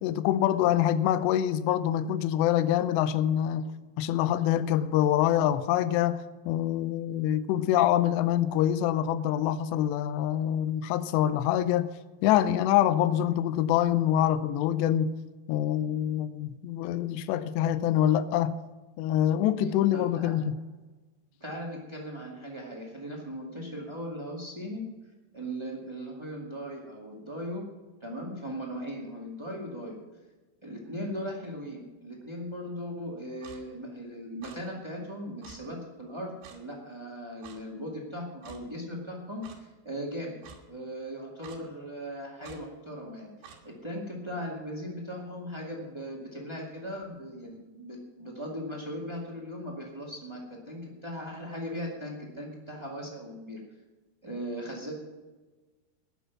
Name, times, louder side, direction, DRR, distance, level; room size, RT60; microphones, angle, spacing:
voice 1, 0.0-3.7 4.0-11.9 12.2-15.1 15.5-18.6 19.0-20.5, left 11 dB, 80° left, 2.8 m, -25 dB
voice 2, 19.9-20.3 21.4-24.8 25.3-27.6 28.0-30.0 30.6-40.4 40.7-43.3 43.6-50.4 50.6-53.6 54.2-54.9, equal, 30° right, 0.4 m, -38 dB
Clock, 33.4-33.6 34.4-34.6 35.4-35.6 36.4-36.6 37.4-37.6 38.4-38.6 39.4-39.6 40.4-40.6 41.4-41.6 42.4-42.6 43.4-43.6, right 7 dB, 85° right, 3.9 m, -48 dB
19.0 x 6.8 x 6.0 m
omnidirectional pair, 5.0 m